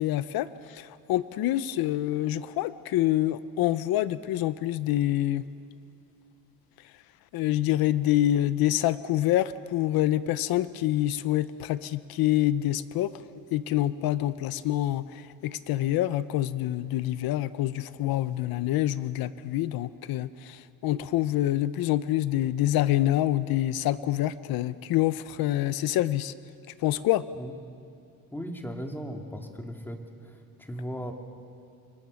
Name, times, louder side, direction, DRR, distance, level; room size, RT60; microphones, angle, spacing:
voice 1, 0.0-5.4 7.3-13.1 13.5-26.3 26.8-27.2, left 14 dB, 80° left, 14 dB, 0.8 m, -26 dB
voice 2, 28.3-31.1, equal, 5° left, 3 dB, 2.4 m, -37 dB
29.0 x 26.5 x 6.4 m, 2.7 s
cardioid pair, 130°, 36 cm